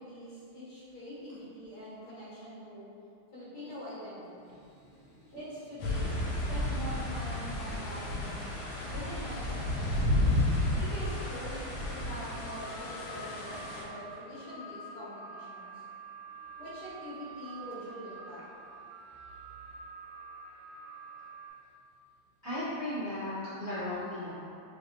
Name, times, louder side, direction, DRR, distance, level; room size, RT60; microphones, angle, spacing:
voice 1, 0.0-2.8 3.3-4.6 5.3-8.5 8.9-10.1 10.7-15.8 16.6-18.4, equal, 50° left, -10 dB, 1.7 m, -44 dB
voice 2, 4.6-5.3 22.4-24.3, left 1 dB, 25° right, -12 dB, 0.4 m, -37 dB
sound 1, 5.8-13.8, left 1 dB, 75° left, 1.5 m, -32 dB
sound 2, 5.8-21.5, right 2 dB, 25° left, 1.1 m, -48 dB
6.4 x 2.9 x 2.2 m, 2.5 s
omnidirectional pair, 2.4 m